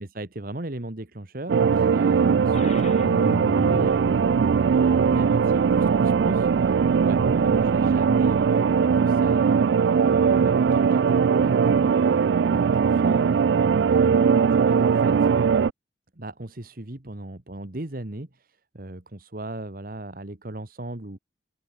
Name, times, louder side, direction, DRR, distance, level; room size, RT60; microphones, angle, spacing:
voice 1, 0.0-3.1 3.5-4.6 5.0-9.7 10.2-13.3 13.8-15.2 16.2-21.2, right 1 dB, 55° right, 1.6 m, -37 dB
sound 1, 1.5-15.7, right 6 dB, 85° right, 0.4 m, -20 dB
sound 2, 2.5-8.6, left 3 dB, 40° left, 0.4 m, -40 dB
open air
head